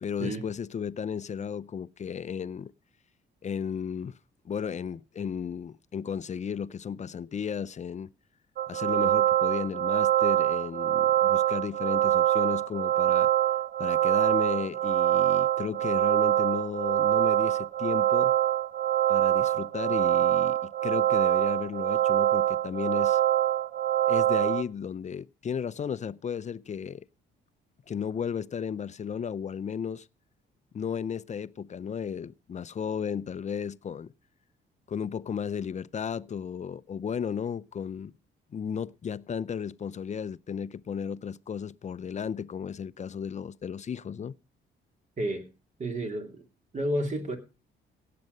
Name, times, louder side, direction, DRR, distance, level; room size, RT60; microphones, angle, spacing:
voice 1, 0.0-2.7 3.4-4.2 4.4-8.1 8.7-13.3 13.8-18.3 19.1-23.2 24.1-27.0 27.9-30.1 30.7-34.1 34.9-38.1 38.5-44.3, left 7 dB, 35° left, 0.5 m, -34 dB
sound 1, 8.6-24.6, right 12 dB, 60° right, 0.8 m, -24 dB
voice 2, 45.8-46.4 46.7-47.4, right 1 dB, 35° right, 3.1 m, -30 dB
17.0 x 7.7 x 5.3 m
cardioid pair, 90°, 20 cm